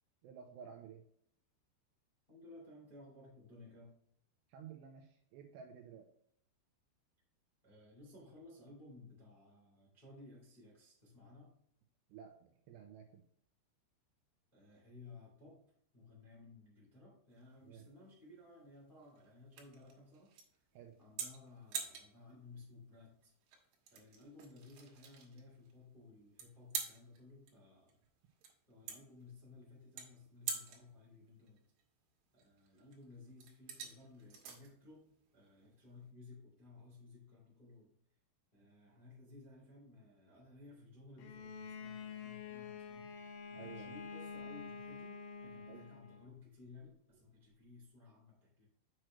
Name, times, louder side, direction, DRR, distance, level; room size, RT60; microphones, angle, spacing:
voice 1, 0.2-1.0 4.5-6.1 12.1-13.2 17.6-17.9 20.7-20.9 43.6-43.9 45.7-45.9, right 7 dB, 80° right, 3 dB, 2.5 m, -53 dB
voice 2, 2.3-3.9 7.6-11.5 14.5-15.6 15.9-20.6 21.0-23.3 23.9-27.9 28.7-31.6 32.3-35.1 35.3-37.9 38.5-48.6, left 3 dB, 25° left, -4 dB, 1.1 m, -57 dB
sound 1, 17.3-36.1, right 6 dB, 65° right, 2.9 m, -48 dB
Bowed string instrument, 41.2-46.3, left 5 dB, 75° left, 2.4 m, -48 dB
7.7 x 6.3 x 3.1 m, 0.67 s
omnidirectional pair, 5.6 m